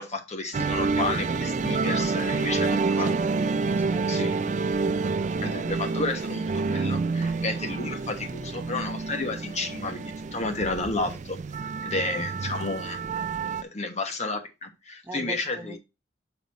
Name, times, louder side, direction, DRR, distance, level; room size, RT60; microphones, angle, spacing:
voice 1, 0.0-3.1 4.1-4.3 5.4-13.0 13.6-15.8, left 3 dB, 35° left, 1.1 m, -32 dB
sound 1, 0.5-13.6, right 4 dB, 40° right, 0.4 m, -28 dB
voice 2, 2.3-4.3 15.0-15.8, right 1 dB, 10° right, 0.8 m, -41 dB
7.4 x 4.1 x 4.1 m
head